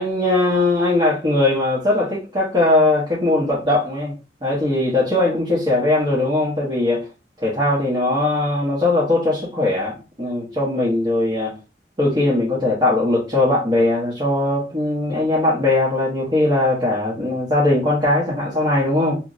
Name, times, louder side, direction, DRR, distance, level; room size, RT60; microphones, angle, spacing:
voice 1, 0.0-4.1 4.4-7.0 7.4-11.5 12.0-19.2, left 2 dB, 25° right, 1.1 m, -19 dB
3.2 x 3.1 x 2.6 m
head